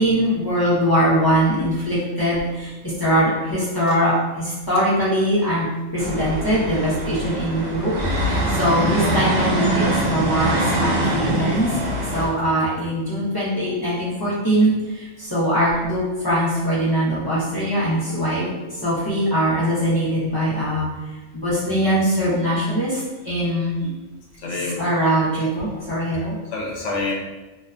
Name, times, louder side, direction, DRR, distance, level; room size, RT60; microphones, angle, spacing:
voice 1, 0.0-2.7 3.0-5.7 5.9-11.7 12.1-18.5 18.8-20.9 21.3-23.0 23.2-23.7 24.8-26.3, equal, 30° left, -10 dB, 0.4 m, -21 dB
sound 1, 6.0-12.3, right 1 dB, 80° right, 1.0 m, -23 dB
voice 2, 8.6-9.0 17.5-17.6 18.1-18.2 23.8-23.9 24.4-24.9 25.7-25.8 26.2-27.1, left 3 dB, 70° left, -3 dB, 0.9 m, -30 dB
2.7 x 2.1 x 2.4 m, 1.1 s
omnidirectional pair, 1.3 m